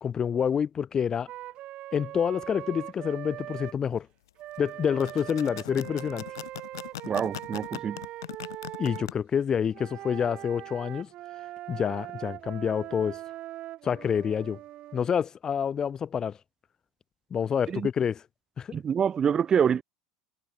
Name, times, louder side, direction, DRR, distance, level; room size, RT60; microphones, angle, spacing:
voice 1, 0.0-1.3 1.9-4.1 4.6-6.3 8.8-11.1 11.7-13.2 13.8-14.6 14.9-16.4 17.3-18.2 18.6-18.8, left 7 dB, 30° left, 0.4 m, -28 dB
Wind instrument woodwind instrument, 1.3-3.8 4.4-9.1 9.7-15.1, right 14 dB, 50° right, 3.3 m, -41 dB
sound 1, 4.8-9.1, left 13 dB, 75° left, 1.6 m, -40 dB
voice 2, 7.1-8.1 17.7-17.9 18.7-19.8, right 7 dB, 30° right, 0.6 m, -26 dB
hypercardioid pair, 80°, 2 cm